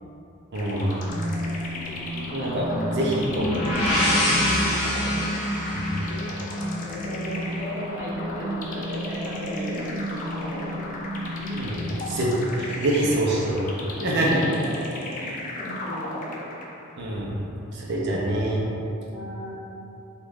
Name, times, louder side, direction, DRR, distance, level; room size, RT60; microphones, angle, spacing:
sound 1, 0.5-16.9, left 1 dB, 35° left, 0.3 m, -36 dB
voice 1, 0.5-1.0 2.3-3.6 5.7-5.9 11.6-11.8 12.1-13.6 14.0-14.4 17.0-17.4 17.7-18.6, right 1 dB, 50° right, -4 dB, 0.5 m, -25 dB
sound 2, 1.1-13.1, equal, 20° left, 0.7 m, -33 dB
sound 3, 3.2-7.0, left 1 dB, 65° left, 0.8 m, -26 dB
voice 2, 4.3-4.8 6.8-10.7 14.1-14.7 15.1-15.3 15.6-16.4 19.1-19.5, left 1 dB, 10° right, -11 dB, 0.9 m, -35 dB
3.0 x 2.4 x 3.5 m, 2.8 s
head